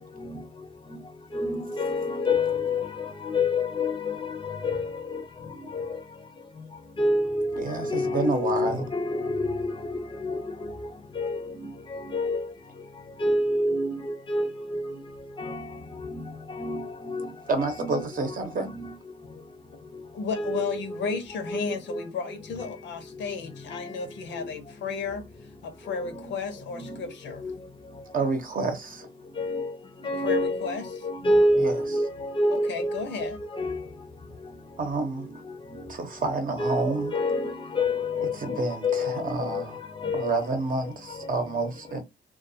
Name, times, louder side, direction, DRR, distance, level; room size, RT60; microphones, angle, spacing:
voice 1, 1.3-5.2 5.7-5.9 7.0-10.4 11.2-12.5 13.2-14.9 15.4-15.7 16.1-16.2 16.5-17.3 17.6-18.0 18.7-18.9 20.4-20.6 21.0-21.2 21.5-22.0 23.7-23.9 26.8-27.0 27.4-27.5 29.4-29.7 30.0-30.8 31.0-33.8 36.6-39.6 40.0-40.4, left 2 dB, 25° left, 0.6 m, -28 dB
voice 2, 7.6-8.9 17.5-18.7 28.1-29.1 31.5-31.8 34.8-35.3 35.9-37.1 38.2-39.8 40.1-42.0, right 3 dB, 45° right, 0.8 m, -29 dB
voice 3, 20.1-25.2 25.6-27.4 30.0-30.8 32.5-33.4, left 5 dB, 65° left, 0.8 m, -33 dB
2.3 x 2.3 x 2.7 m
cardioid pair, 90°, 20 cm